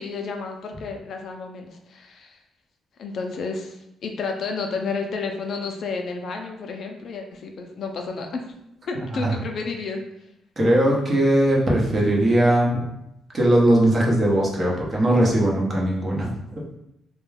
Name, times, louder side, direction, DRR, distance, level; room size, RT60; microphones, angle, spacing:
voice 1, 0.0-2.4 3.0-8.4 8.9-10.0, left 4 dB, 60° left, 3 dB, 0.4 m, -31 dB
voice 2, 8.9-9.3 10.6-12.8 13.3-16.3, right 1 dB, 35° right, -3 dB, 0.8 m, -19 dB
2.3 x 2.1 x 3.2 m, 0.81 s
cardioid pair, 90°, 0 cm